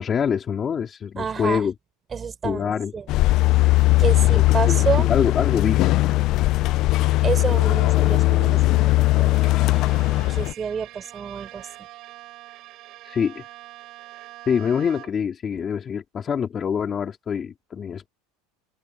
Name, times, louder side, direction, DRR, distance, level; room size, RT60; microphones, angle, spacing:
voice 1, 0.0-1.7 2.4-2.9 4.2-5.9 13.0-13.4 14.5-18.1, left 7 dB, 25° left, 2.7 m, -25 dB
voice 2, 1.2-1.7 2.1-3.1 4.0-5.1 7.2-9.4 10.3-11.7, right 6 dB, 20° right, 5.9 m, -29 dB
sound 1, 3.1-10.5, left 18 dB, 45° left, 0.3 m, -19 dB
Bowed string instrument, 9.3-15.4, right 17 dB, 45° right, 6.8 m, -44 dB
supercardioid pair, 155°, 0 cm